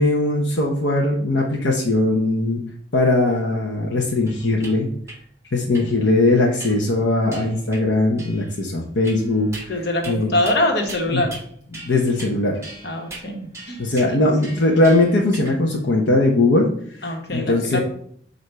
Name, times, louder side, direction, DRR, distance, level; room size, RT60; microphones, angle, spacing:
voice 1, 0.0-2.6 2.9-4.9 5.5-10.3 11.1-11.2 11.7-12.6 13.8-16.7 17.0-17.8, left 2 dB, 90° left, -1 dB, 0.9 m, -20 dB
sound 1, 4.3-4.7 5.1-5.2 5.7-5.9 6.6-6.9 7.3-7.8 8.2-8.6 9.0-9.7 10.0-10.2 10.5-10.6 10.9-11.5 11.7-12.3 12.6-15.6, right 2 dB, 15° right, 1.6 m, -39 dB
voice 2, 9.7-11.3 12.8-13.8 14.0-14.2 17.0-17.8, left 1 dB, 65° left, 2 dB, 1.4 m, -24 dB
8.0 x 2.7 x 5.5 m, 0.63 s
head